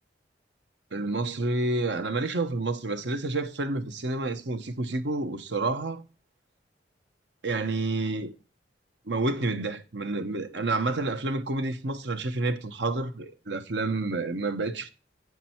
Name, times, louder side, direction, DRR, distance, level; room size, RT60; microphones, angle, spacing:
voice 1, 0.9-6.0 7.4-8.3 9.1-14.9, right 2 dB, 80° right, 1.1 m, -29 dB
8.3 x 6.1 x 4.4 m
head